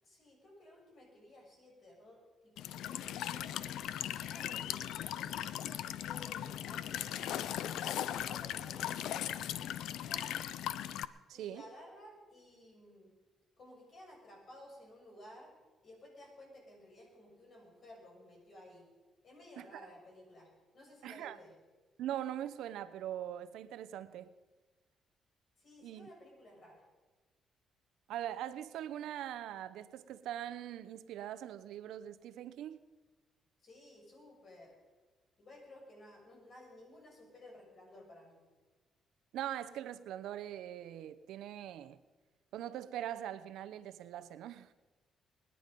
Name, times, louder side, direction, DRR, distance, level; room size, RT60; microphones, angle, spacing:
voice 1, 0.0-3.5 4.0-4.8 5.1-10.2 11.3-13.1 13.6-15.5 15.8-18.9 19.2-21.5 25.6-26.8 33.6-34.8 35.4-38.4, left 1 dB, 55° left, 6.5 m, -56 dB
Walk footsteps / Chirp tweet / Stream, 2.6-11.1, left 11 dB, 85° left, 0.5 m, -38 dB
voice 2, 11.3-11.6 19.6-19.9 21.0-21.4 22.0-24.3 25.8-26.1 28.1-32.8 39.3-42.0 42.5-44.7, right 11 dB, 85° right, 0.8 m, -42 dB
22.0 x 10.0 x 5.3 m
cardioid pair, 90°, 0 cm